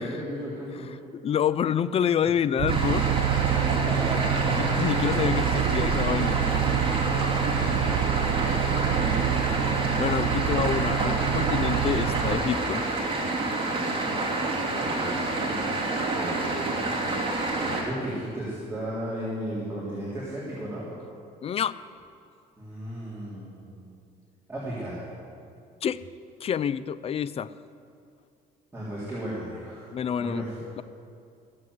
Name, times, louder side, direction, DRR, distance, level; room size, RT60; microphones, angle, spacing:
voice 1, 0.0-1.0 3.8-4.6 14.5-15.7 16.1-16.9 17.6-20.9 22.6-23.9 24.5-25.0 28.7-29.9 30.2-30.6, right 1 dB, 15° right, -8 dB, 3.4 m, -36 dB
voice 2, 1.1-3.1 4.6-6.4 10.0-12.8 21.4-21.8 25.8-26.0 26.4-27.5 29.9-30.4, left 8 dB, 35° left, 15 dB, 0.4 m, -27 dB
sound 1, 2.6-12.4, right 10 dB, 70° right, 0.6 m, -27 dB
sound 2, 2.7-17.8, right 2 dB, 30° right, 2.8 m, -28 dB
15.0 x 7.6 x 7.9 m, 2.4 s
cardioid pair, 110°, 17 cm